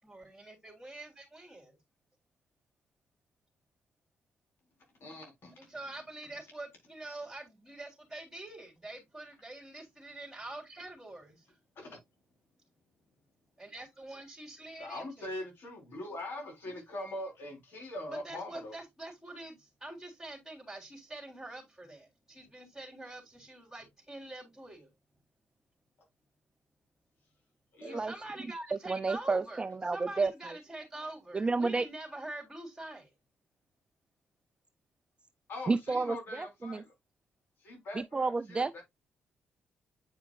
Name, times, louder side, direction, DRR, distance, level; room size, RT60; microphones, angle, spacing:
voice 1, 0.0-1.8 5.6-11.4 13.6-15.0 18.1-24.9 27.8-29.6 29.9-33.1, right 2 dB, 10° right, 3.5 m, -45 dB
voice 2, 5.0-5.8 11.7-12.0 14.8-18.8 27.7-28.1 35.5-36.9 37.6-38.8, left 1 dB, 65° left, 4.2 m, -42 dB
voice 3, 28.9-30.3 31.3-31.8 35.7-36.8 38.1-38.8, right 3 dB, 25° right, 0.4 m, -30 dB
8.8 x 5.0 x 2.5 m
supercardioid pair, 65°, 4 cm